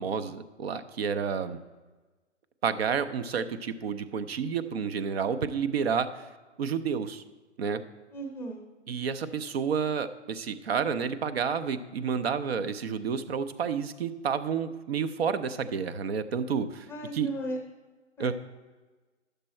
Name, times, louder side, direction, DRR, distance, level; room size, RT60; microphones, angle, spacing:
voice 1, 0.0-1.6 2.6-6.2 6.6-7.2 7.6-7.8 8.9-16.9 17.1-17.3 18.2-18.3, right 6 dB, 60° right, 12 dB, 0.7 m, -30 dB
voice 2, 8.1-8.6 16.9-17.6 18.2-18.3, right 1 dB, 5° left, 1 dB, 0.8 m, -36 dB
10.5 x 6.8 x 4.3 m, 1.3 s
figure-of-eight pair, 130°, 36 cm